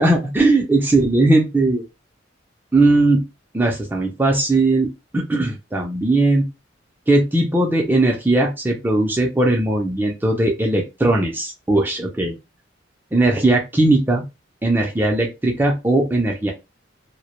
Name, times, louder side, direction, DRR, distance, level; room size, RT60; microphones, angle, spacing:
voice 1, 0.0-1.8 2.7-3.2 3.5-6.5 7.1-12.3 13.1-14.2 14.6-16.5, right 2 dB, 10° right, 0 dB, 0.4 m, -18 dB
2.1 x 2.0 x 2.9 m, 0.24 s
head